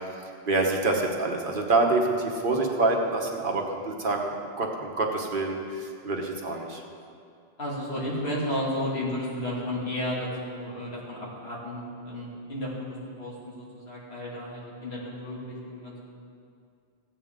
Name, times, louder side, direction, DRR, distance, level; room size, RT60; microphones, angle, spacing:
voice 1, 0.5-6.8, right 2 dB, 55° right, 2 dB, 1.2 m, -26 dB
voice 2, 7.6-12.7 13.2-16.0, left 1 dB, 85° left, -6 dB, 2.7 m, -33 dB
15.5 x 8.7 x 3.7 m, 2.4 s
omnidirectional pair, 1.1 m